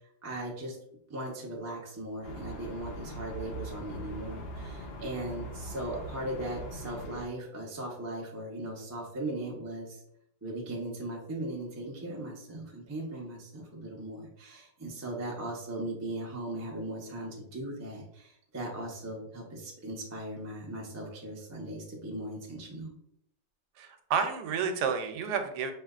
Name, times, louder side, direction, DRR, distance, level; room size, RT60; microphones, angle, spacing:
voice 1, 0.2-0.8 1.1-10.0 10.4-22.9, right 1 dB, 25° right, -2 dB, 0.3 m, -38 dB
sound 1, 2.2-7.2, right 1 dB, 65° left, 0.6 m, -41 dB
voice 2, 23.8-25.7, right 6 dB, 80° right, 6 dB, 1.1 m, -30 dB
4.9 x 2.8 x 2.4 m, 0.74 s
omnidirectional pair, 1.8 m